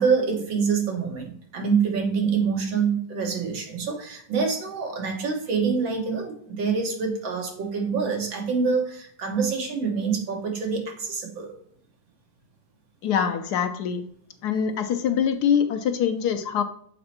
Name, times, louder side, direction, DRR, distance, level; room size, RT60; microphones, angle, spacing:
voice 1, 0.0-11.5, right 5 dB, 90° right, 1 dB, 2.3 m, -26 dB
voice 2, 13.0-14.0 14.4-16.6, left 8 dB, 70° left, 6 dB, 1.1 m, -24 dB
6.8 x 4.3 x 4.2 m, 0.62 s
omnidirectional pair, 2.0 m